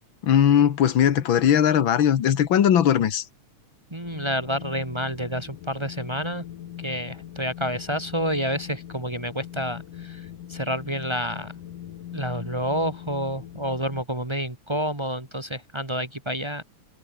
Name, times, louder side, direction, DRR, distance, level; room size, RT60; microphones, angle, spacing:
voice 1, 0.2-3.2, left 9 dB, 50° left, 1.7 m, -19 dB
voice 2, 3.9-6.4 6.8-11.5 12.1-16.6, equal, 15° right, 0.9 m, -29 dB
Wind, 4.0-14.0, left 11 dB, 85° left, 3.2 m, -41 dB
omnidirectional pair, 3.6 m